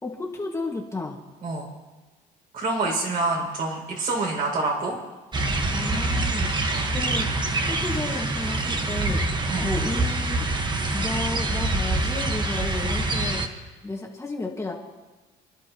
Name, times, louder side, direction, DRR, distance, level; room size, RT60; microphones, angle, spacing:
voice 1, 0.0-1.2 5.7-6.5 6.9-7.3 7.7-9.2 9.6-10.4 10.9-13.4 13.8-14.7, left 2 dB, 15° left, -1 dB, 1.9 m, -32 dB
voice 2, 2.5-5.0 6.7-6.9 9.5-9.7, right 3 dB, 55° right, -1 dB, 6.2 m, -27 dB
sound 1, 5.3-13.5, right 2 dB, 25° right, 1.5 m, -25 dB
30.0 x 11.5 x 3.1 m, 1.2 s
cardioid pair, 110°, 17 cm